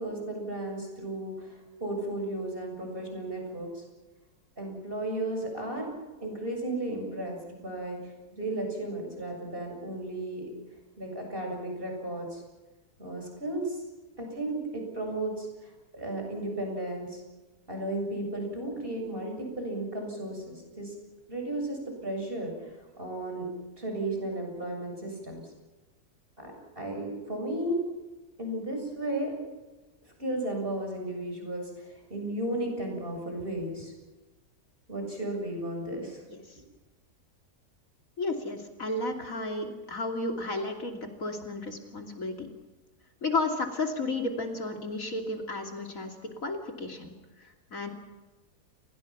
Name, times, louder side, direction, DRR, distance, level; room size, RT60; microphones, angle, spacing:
voice 1, 0.0-3.8 4.6-5.9 6.2-10.5 11.0-12.4 13.0-13.8 14.2-17.2 17.7-20.9 21.3-23.5 23.8-25.4 26.4-27.8 28.4-29.3 30.2-33.9 34.9-36.2, right 1 dB, 35° right, 2 dB, 7.4 m, -34 dB
voice 2, 38.2-42.5 43.2-47.1 47.7-47.9, left 2 dB, 60° left, 3 dB, 3.3 m, -33 dB
30.0 x 21.0 x 6.0 m, 1.2 s
omnidirectional pair, 1.6 m